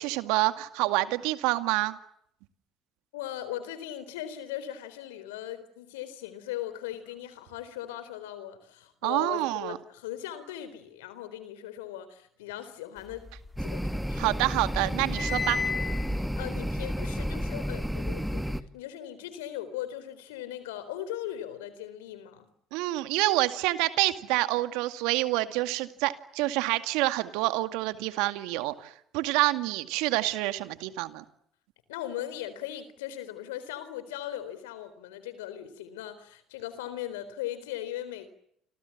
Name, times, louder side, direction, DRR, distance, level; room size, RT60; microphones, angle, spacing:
voice 1, 0.0-2.0 9.0-9.8 14.2-15.6 22.7-31.2, right 18 dB, 75° right, 2.1 m, -27 dB
voice 2, 3.1-13.3 13.6-14.3 16.1-22.5 31.9-38.3, left 12 dB, 85° left, 4.0 m, -39 dB
sound 1, 13.1-14.2 14.5-17.9, left 5 dB, 20° left, 5.0 m, -35 dB
sound 2, 13.6-18.6, equal, ahead, 1.9 m, -31 dB
30.0 x 26.0 x 7.3 m
hypercardioid pair, 65°, 0 cm